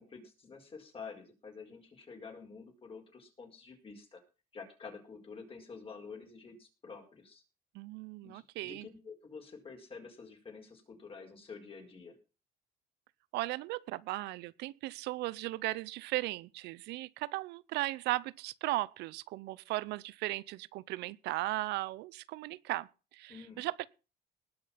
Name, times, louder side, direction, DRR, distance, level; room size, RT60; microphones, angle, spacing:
voice 1, 0.0-4.2 4.5-7.4 8.2-12.2 23.3-23.6, left 5 dB, 35° left, 5.4 m, -49 dB
voice 2, 7.7-8.9 13.3-23.9, right 18 dB, 85° right, 0.6 m, -37 dB
19.5 x 6.6 x 5.7 m
cardioid pair, 110°, 17 cm